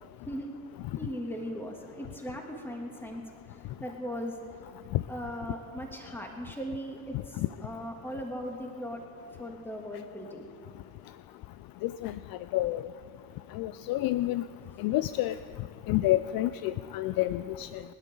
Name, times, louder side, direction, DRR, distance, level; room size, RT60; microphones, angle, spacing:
voice 1, 1.0-4.4 5.1-9.0 9.4-10.5, equal, 5° left, 1 dB, 2.6 m, -38 dB
voice 2, 11.8-12.1 12.5-12.8 13.5-14.4 14.8-15.3 15.9-17.8, left 15 dB, 55° left, 14 dB, 0.6 m, -28 dB
25.0 x 11.5 x 3.9 m, 2.3 s
hypercardioid pair, 55°, 44 cm